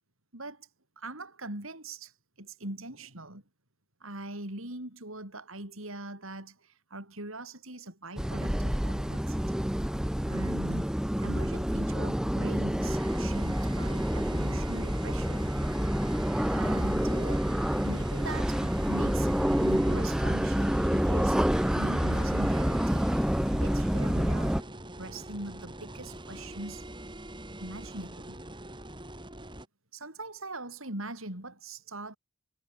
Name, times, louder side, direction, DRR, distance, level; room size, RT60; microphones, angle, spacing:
voice 1, 0.3-0.7 1.0-3.4 4.0-9.6 10.3-10.9 11.2-15.5 16.5-17.5 17.8-21.4 21.7-23.1 23.5-24.6 25.0-26.9 27.6-28.4 29.9-32.2, right 2 dB, 70° right, 7.2 m, -42 dB
sound 1, 8.2-24.6, equal, 5° right, 0.4 m, -28 dB
sound 2, 12.8-29.7, right 1 dB, 20° right, 4.9 m, -43 dB
head